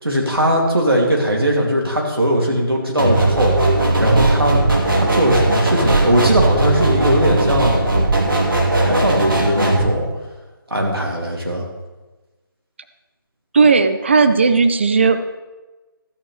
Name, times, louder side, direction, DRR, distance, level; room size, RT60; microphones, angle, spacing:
voice 1, 0.0-3.5 4.0-4.6 4.9-7.9 8.4-10.1 10.7-11.7, equal, 85° right, -1 dB, 2.8 m, -19 dB
sound 1, 3.0-9.8, right 2 dB, 65° right, 2.5 m, -17 dB
voice 2, 13.5-15.4, right 4 dB, 30° right, 9 dB, 0.5 m, -15 dB
13.5 x 9.1 x 3.4 m, 1.2 s
figure-of-eight pair, 155°, 12 cm